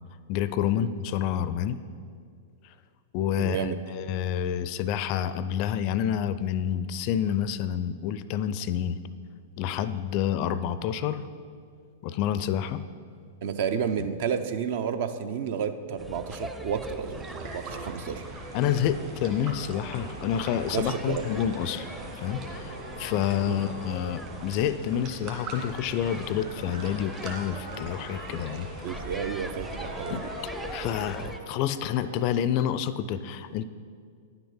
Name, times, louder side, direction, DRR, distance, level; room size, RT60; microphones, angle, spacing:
voice 1, 0.3-1.8 3.1-9.0 9.6-11.3 12.0-12.8 18.5-21.9 22.1-28.7 30.1-30.3 30.7-33.6, left 9 dB, 45° left, 14 dB, 0.4 m, -28 dB
voice 2, 3.3-3.8 13.4-17.3 17.5-18.2 20.7-21.2 23.4-23.6 28.8-30.3, right 7 dB, 55° right, 10 dB, 0.6 m, -31 dB
sound 1, 16.0-31.4, right 1 dB, 5° right, 0.6 m, -42 dB
sound 2, 17.0-31.3, right 3 dB, 40° right, 2.0 m, -45 dB
sound 3, 17.7-32.3, equal, 90° right, 1.3 m, -43 dB
10.0 x 5.9 x 5.6 m, 2.2 s
hypercardioid pair, 105°, 0 cm